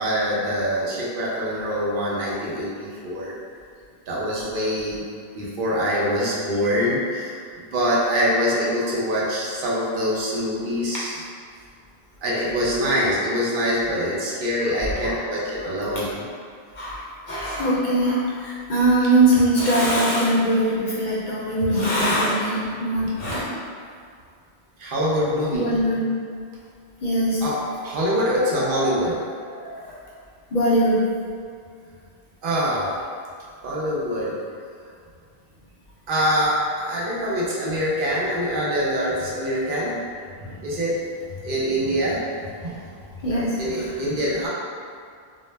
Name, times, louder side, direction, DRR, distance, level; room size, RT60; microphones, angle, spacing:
voice 1, 0.0-3.4 4.1-5.0 5.3-11.1 12.2-16.2 24.8-25.7 27.4-29.2 32.4-32.9 33.6-34.4 36.1-40.0 40.4-41.0 41.3-43.1 43.6-44.5, equal, 65° right, -6 dB, 0.7 m, -24 dB
voice 2, 16.8-23.5 25.5-26.0 27.0-27.4 28.6-28.9 29.5-29.8 30.5-31.0 43.2-43.5, right 1 dB, 60° left, -7 dB, 0.6 m, -21 dB
2.2 x 2.0 x 3.1 m, 2.2 s
omnidirectional pair, 1.0 m